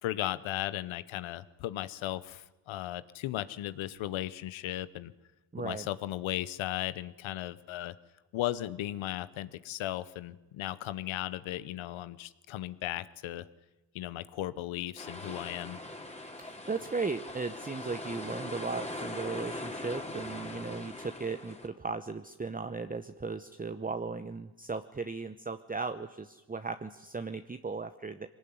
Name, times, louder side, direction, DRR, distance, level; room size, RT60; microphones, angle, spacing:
voice 1, 0.0-5.1 5.6-8.0 8.3-13.5 13.9-15.8, left 14 dB, 85° left, 16 dB, 1.0 m, -36 dB
voice 2, 5.5-5.9 16.4-28.3, right 4 dB, 20° right, 8 dB, 0.9 m, -36 dB
sound 1, 15.0-21.7, left 1 dB, 15° left, 3.1 m, -41 dB
22.0 x 18.0 x 9.6 m, 1.1 s
cardioid pair, 60°, 46 cm